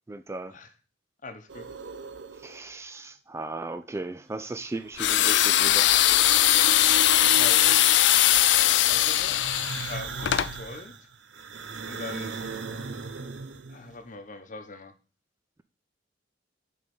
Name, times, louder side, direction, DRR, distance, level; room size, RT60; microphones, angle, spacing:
voice 1, 0.1-0.6 2.3-6.0, right 2 dB, 15° right, 0.3 m, -36 dB
voice 2, 1.2-1.7 7.2-8.2 8.9-9.4 9.9-10.9 11.9-12.4 13.7-14.9, left 3 dB, 45° left, 0.9 m, -41 dB
sound 1, 1.5-2.8 4.5-5.4 5.8-8.3 9.1-13.9, right 4 dB, 85° right, 0.8 m, -38 dB
sound 2, 5.0-10.5, left 12 dB, 70° left, 0.4 m, -20 dB
7.4 x 3.8 x 5.3 m
head